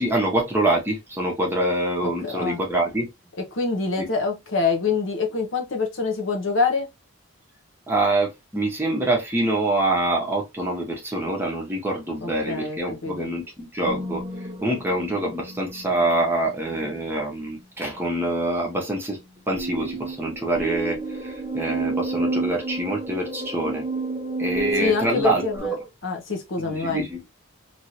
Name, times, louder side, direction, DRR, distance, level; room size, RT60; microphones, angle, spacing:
voice 1, 0.0-3.1 4.0-4.1 7.9-14.2 14.6-19.2 19.5-23.9 24.4-25.8 26.6-27.2, right 1 dB, 10° right, 1.0 m, -25 dB
voice 2, 2.0-2.6 3.5-6.9 12.2-13.3 24.8-25.8 26.0-27.1, left 4 dB, 60° left, 0.9 m, -25 dB
sound 1, 13.8-17.0 19.5-25.6, right 2 dB, 25° right, 0.6 m, -31 dB
3.1 x 2.6 x 2.9 m
head